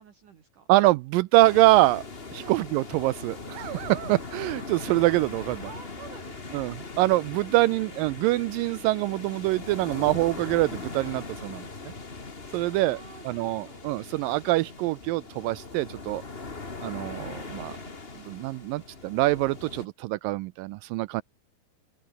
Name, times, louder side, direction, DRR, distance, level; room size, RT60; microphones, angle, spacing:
voice 1, 0.0-0.7 2.4-2.6 5.6-6.7 7.5-8.1 12.7-13.8, right 7 dB, 55° right, 3.8 m, -49 dB
voice 2, 0.7-2.0 2.3-5.7 6.5-11.6 12.5-13.0 13.3-16.2 16.8-17.8 18.3-21.2, right 18 dB, 85° right, 2.0 m, -24 dB
sound 1, 1.4-19.9, left 3 dB, 25° left, 1.3 m, -40 dB
open air
omnidirectional pair, 4.5 m